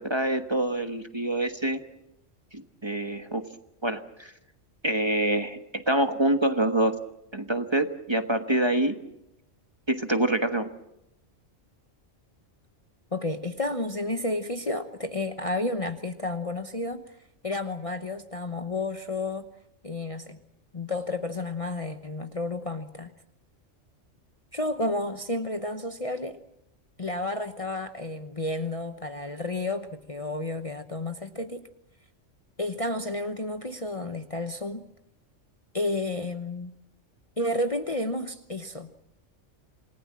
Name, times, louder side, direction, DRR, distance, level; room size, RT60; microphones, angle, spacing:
voice 1, 0.0-1.8 2.5-3.4 3.8-4.3 4.8-7.0 7.3-9.0 9.9-10.7, right 1 dB, 20° right, 7 dB, 1.3 m, -26 dB
voice 2, 13.1-17.0 17.4-19.5 19.8-20.4 20.7-23.1 24.5-26.4 27.0-31.7 32.6-34.9 35.7-36.7 37.4-39.0, left 2 dB, 30° left, 7 dB, 1.0 m, -31 dB
28.0 x 19.0 x 7.5 m, 0.84 s
omnidirectional pair, 1.3 m